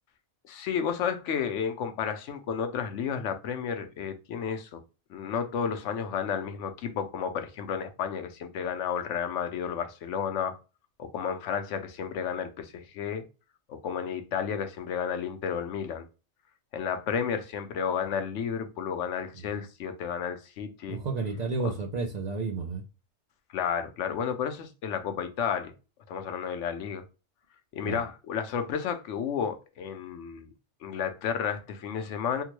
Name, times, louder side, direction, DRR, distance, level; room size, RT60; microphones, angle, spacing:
voice 1, 0.5-4.8 5.1-10.5 11.0-13.2 13.7-16.1 16.7-21.0 21.6-21.7 23.5-25.7 26.1-27.0 27.7-30.5 30.8-32.4, left 7 dB, 75° left, 0.9 m, -32 dB
voice 2, 20.9-22.8 27.8-28.0, right 4 dB, 60° right, 0.4 m, -31 dB
3.6 x 2.1 x 3.0 m
omnidirectional pair, 1.3 m